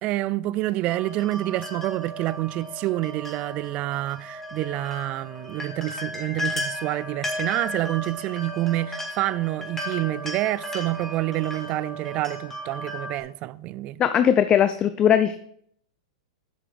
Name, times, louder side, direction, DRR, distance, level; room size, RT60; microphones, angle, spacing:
voice 1, 0.0-14.0, right 16 dB, 40° right, 0.3 m, -28 dB
sound 1, 0.8-13.2, equal, 10° left, 2.1 m, -35 dB
voice 2, 14.0-15.4, left 9 dB, 25° left, 0.5 m, -19 dB
7.6 x 6.1 x 5.0 m
hypercardioid pair, 120°, 3 cm